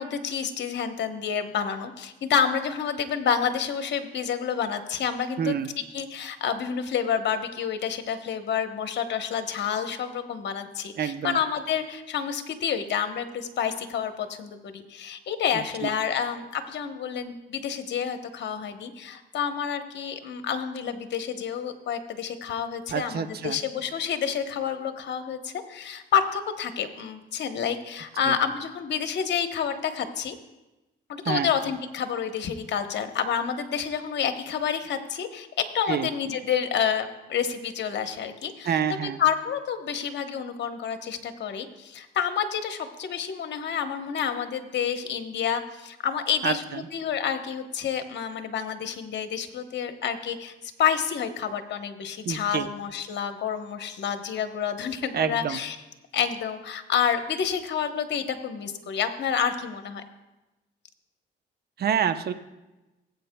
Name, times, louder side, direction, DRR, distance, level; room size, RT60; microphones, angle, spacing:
voice 1, 0.0-5.6 5.9-30.4 31.1-50.5 50.8-55.8 56.1-60.0, left 8 dB, 60° left, 8 dB, 1.0 m, -29 dB
voice 2, 5.4-5.7 11.0-11.4 15.5-15.9 22.9-23.6 28.3-28.4 31.3-31.5 35.9-36.1 38.6-39.2 46.4-46.8 52.3-52.7 55.1-55.6 61.8-62.3, right 8 dB, 55° right, 10 dB, 0.7 m, -27 dB
18.5 x 8.2 x 2.2 m, 1.0 s
cardioid pair, 90°, 20 cm